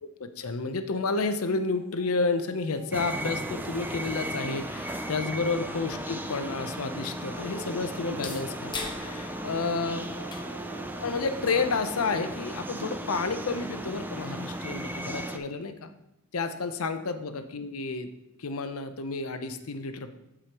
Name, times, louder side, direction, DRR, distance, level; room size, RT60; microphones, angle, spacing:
voice 1, 0.0-10.0 11.0-15.9 16.3-18.1 18.4-20.1, left 4 dB, 90° left, 9 dB, 0.7 m, -31 dB
sound 1, 1.4-14.3, equal, 80° right, 2.0 m, -48 dB
sound 2, 2.9-15.4, right 1 dB, 10° right, 0.5 m, -36 dB
sound 3, 8.0-13.7, left 4 dB, 20° left, 0.9 m, -46 dB
14.0 x 5.0 x 3.0 m, 0.92 s
head